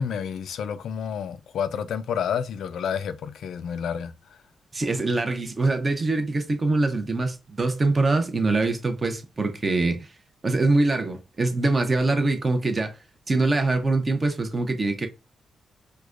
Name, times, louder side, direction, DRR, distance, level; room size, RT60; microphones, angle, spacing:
voice 1, 0.0-4.4, left 7 dB, 85° left, 0.3 m, -30 dB
voice 2, 4.7-10.1 10.4-13.0 13.3-15.1, right 2 dB, 25° right, 0.6 m, -23 dB
4.7 x 2.1 x 2.4 m
wide cardioid pair, 135°, 0 cm